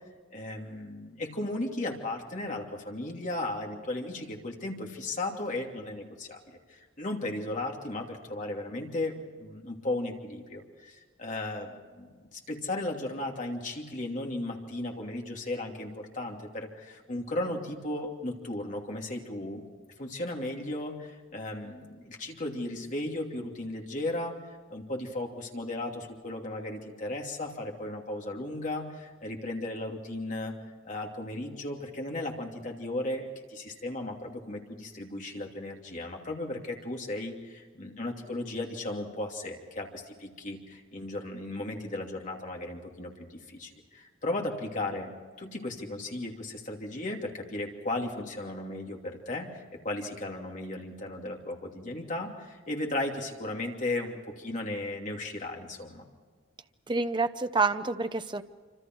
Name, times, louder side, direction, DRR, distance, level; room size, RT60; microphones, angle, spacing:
voice 1, 0.3-19.7 20.0-30.5 30.8-45.1 45.4-56.0, left 2 dB, 40° left, 0 dB, 2.9 m, -35 dB
voice 2, 56.9-58.4, right 4 dB, 25° right, 9 dB, 0.7 m, -28 dB
26.5 x 26.0 x 4.7 m, 1.5 s
head